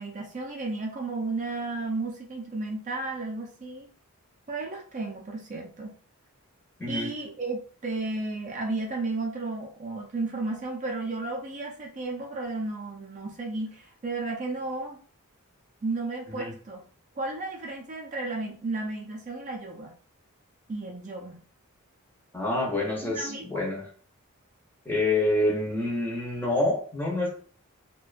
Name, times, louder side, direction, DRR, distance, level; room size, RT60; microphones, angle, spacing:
voice 1, 0.0-3.9 4.5-5.9 6.9-15.0 15.8-16.8 17.2-19.9 20.7-21.4 23.0-23.6, right 2 dB, 35° right, 0 dB, 0.4 m, -33 dB
voice 2, 6.8-7.1 16.4-16.5 22.3-23.9 24.9-27.3, left 2 dB, 10° left, -2 dB, 0.6 m, -27 dB
2.5 x 2.2 x 2.4 m, 0.42 s
head